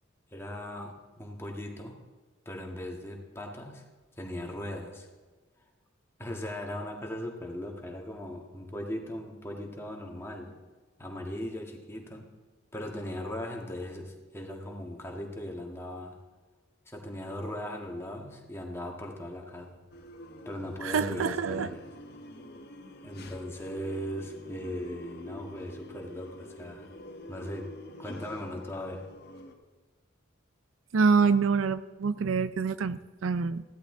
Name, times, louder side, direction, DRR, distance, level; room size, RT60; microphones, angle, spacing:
voice 1, 0.3-2.0 2.4-3.8 4.2-5.1 6.2-10.6 11.0-12.3 12.7-16.2 16.9-19.8 20.4-21.8 23.0-26.9 27.3-27.7 28.0-29.0, left 1 dB, 15° left, 1 dB, 1.6 m, -38 dB
sound 1, 19.9-29.5, left 1 dB, 55° left, 1.2 m, -46 dB
voice 2, 20.8-21.7 30.9-33.6, right 5 dB, 85° right, 15 dB, 0.5 m, -26 dB
15.5 x 11.5 x 3.8 m, 1.3 s
head